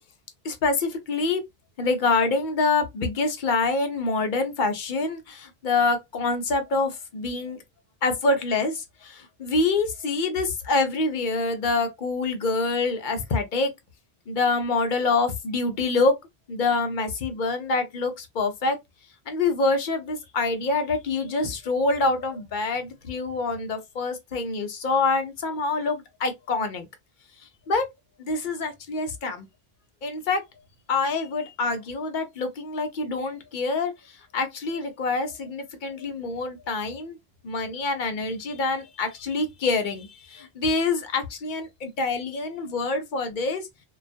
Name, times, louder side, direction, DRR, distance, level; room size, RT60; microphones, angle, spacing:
voice 1, 0.4-1.4 1.8-7.6 8.0-13.7 14.3-16.2 16.5-18.8 19.3-26.9 27.4-27.9 28.2-29.5 30.0-30.4 30.9-37.2 37.4-43.7, left 3 dB, 55° left, 0.7 m, -26 dB
2.3 x 2.3 x 2.4 m
omnidirectional pair, 1.0 m